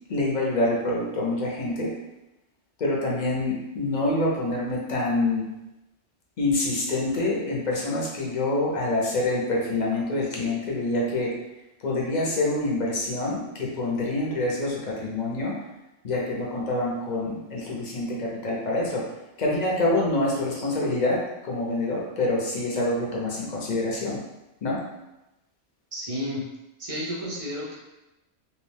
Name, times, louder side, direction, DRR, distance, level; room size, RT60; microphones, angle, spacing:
voice 1, 0.1-1.9 2.8-5.4 6.4-11.3 11.8-15.5 16.0-19.0 19.4-24.2 24.6-24.8, left 2 dB, 45° left, -3 dB, 0.6 m, -26 dB
voice 2, 25.9-26.4 26.8-27.8, equal, 40° right, -4 dB, 0.5 m, -31 dB
2.7 x 2.2 x 3.3 m, 0.96 s
omnidirectional pair, 1.3 m